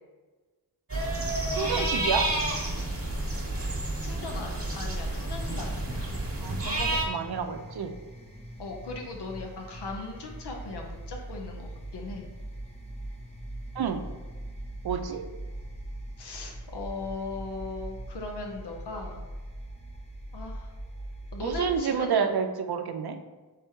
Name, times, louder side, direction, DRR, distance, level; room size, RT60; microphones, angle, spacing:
sound 1, 0.9-7.0, right 1 dB, 35° right, 1.0 m, -30 dB
voice 1, 1.5-2.3 6.4-7.9 13.8-14.0 14.8-15.2 21.4-23.2, right 7 dB, 70° right, 7 dB, 0.5 m, -29 dB
voice 2, 4.0-5.9 8.6-12.3 16.2-19.2 20.3-20.7 21.3-22.3, left 3 dB, 85° left, 2 dB, 0.7 m, -38 dB
sound 2, 5.4-21.8, right 1 dB, 15° left, 0.7 m, -41 dB
3.4 x 3.4 x 4.4 m, 1.3 s
wide cardioid pair, 75°, 40 cm